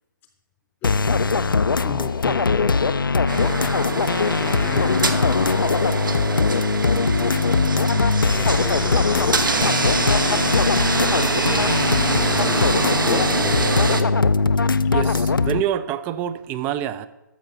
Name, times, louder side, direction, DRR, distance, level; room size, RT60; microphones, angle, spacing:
sound 1, 0.8-15.6, left 4 dB, 80° left, 0.5 m, -20 dB
voice 1, 1.7-3.0 3.4-5.5 6.9-7.3 7.6-7.9 8.3-11.1 11.5-13.8 14.4-15.3, left 7 dB, 15° left, 0.7 m, -36 dB
sound 2, 3.3-14.0, right 4 dB, 75° right, 1.1 m, -25 dB
voice 2, 14.9-17.1, right 10 dB, 15° right, 0.4 m, -26 dB
13.5 x 5.4 x 6.8 m
figure-of-eight pair, 135°, 11 cm